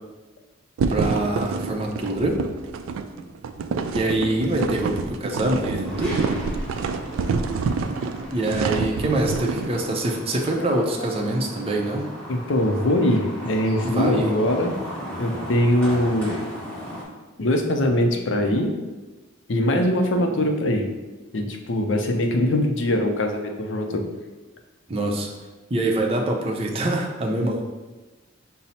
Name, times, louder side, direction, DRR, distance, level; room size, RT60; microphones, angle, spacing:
sound 1, 0.8-9.7, right 4 dB, 80° right, 0.3 m, -27 dB
voice 1, 0.9-2.4 3.9-6.2 8.3-12.1 13.8-14.4 24.9-25.3 25.7-27.6, right 1 dB, 30° right, 0 dB, 0.5 m, -24 dB
sound 2, 5.8-17.0, equal, 10° left, 1.2 m, -37 dB
voice 2, 10.6-11.1 12.3-14.8 15.2-16.4 17.4-18.7 19.5-20.9 21.3-24.0, left 1 dB, 60° left, 4 dB, 0.5 m, -22 dB
5.5 x 2.0 x 4.1 m, 1.2 s
head